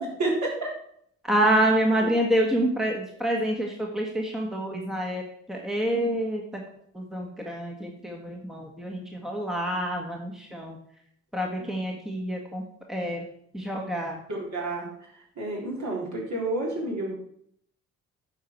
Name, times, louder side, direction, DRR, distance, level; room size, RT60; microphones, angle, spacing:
voice 1, 0.2-0.7 2.0-2.1 11.6-11.7 14.3-14.9 15.4-17.1, right 2 dB, 45° right, -3 dB, 3.8 m, -29 dB
voice 2, 1.3-5.2 5.5-6.4 6.9-10.8 11.3-12.6 12.9-13.2 13.5-14.2, right 1 dB, ahead, 0 dB, 1.7 m, -27 dB
9.2 x 6.0 x 4.6 m, 0.67 s
figure-of-eight pair, 45°, 40 cm